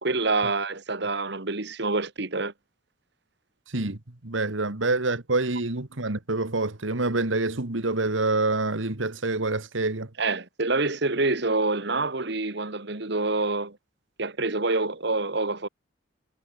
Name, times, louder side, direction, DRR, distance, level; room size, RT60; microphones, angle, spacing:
voice 1, 0.0-2.5 10.2-13.8 14.2-15.7, right 3 dB, 60° right, 1.9 m, -26 dB
voice 2, 3.7-10.1, right 2 dB, 80° right, 1.9 m, -27 dB
head